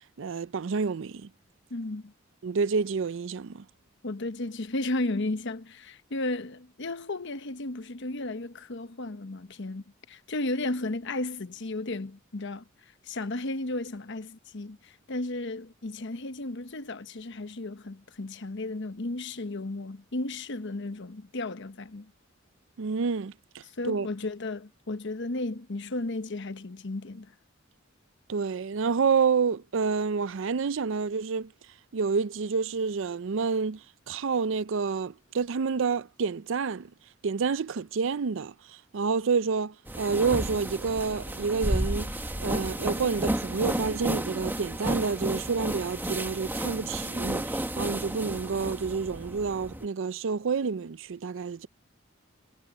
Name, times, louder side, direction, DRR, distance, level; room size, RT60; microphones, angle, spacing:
voice 1, 0.2-1.3 2.4-3.6 22.8-24.1 28.3-31.5 31.9-33.8 34.1-36.9 37.2-38.5 38.9-42.1 42.4-51.7, right 5 dB, 70° right, 0.5 m, -28 dB
voice 2, 1.7-2.1 4.0-12.6 13.0-22.1 23.8-27.3, left 2 dB, 60° left, 1.0 m, -34 dB
sound 1, 39.9-49.9, right 1 dB, 10° right, 1.6 m, -32 dB
head